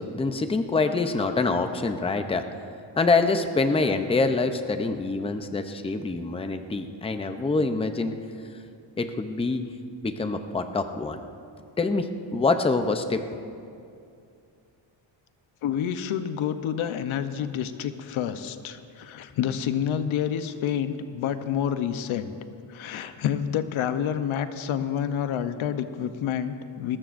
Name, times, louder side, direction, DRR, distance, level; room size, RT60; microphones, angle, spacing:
voice 1, 0.0-2.4 3.0-8.1 9.0-9.6 10.0-11.2 11.8-13.2, left 3 dB, 10° left, 7 dB, 0.6 m, -25 dB
voice 2, 15.6-22.3 22.7-27.0, left 9 dB, 90° left, 10 dB, 0.9 m, -28 dB
21.0 x 19.0 x 2.6 m, 2.5 s
cardioid pair, 140°, 47 cm